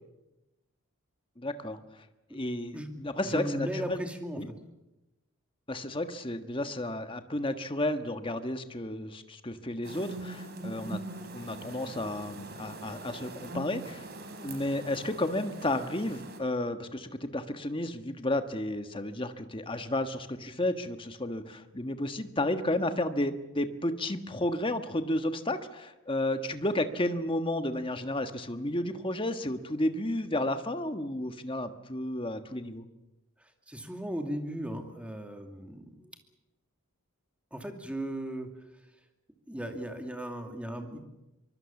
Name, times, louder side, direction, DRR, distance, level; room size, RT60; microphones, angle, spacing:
voice 1, 1.4-1.8 2.3-4.0 4.4-4.5 5.7-11.0 11.3-14.1 14.4-32.8, left 1 dB, 25° left, 8 dB, 1.5 m, -32 dB
voice 2, 3.2-4.6 33.7-36.1 37.5-38.5 39.5-41.0, equal, 5° right, 4 dB, 2.6 m, -36 dB
sound 1, 9.8-16.4, right 2 dB, 45° right, 3.7 m, -42 dB
24.5 x 24.0 x 7.2 m, 0.98 s
head